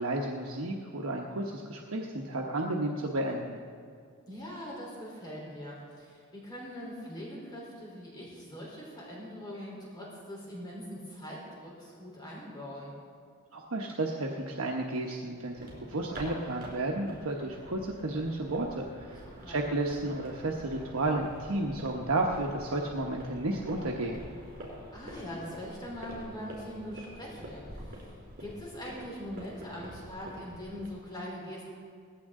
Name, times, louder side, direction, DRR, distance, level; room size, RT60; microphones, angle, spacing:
voice 1, 0.0-3.6 13.5-24.2, right 2 dB, 80° right, 0 dB, 1.1 m, -32 dB
voice 2, 4.3-12.9 19.2-19.6 24.9-28.1 28.4-31.6, equal, 20° left, -4 dB, 3.6 m, -42 dB
sound 1, 15.4-31.0, equal, 45° right, 4.3 m, -46 dB
19.0 x 15.5 x 3.7 m, 2.1 s
head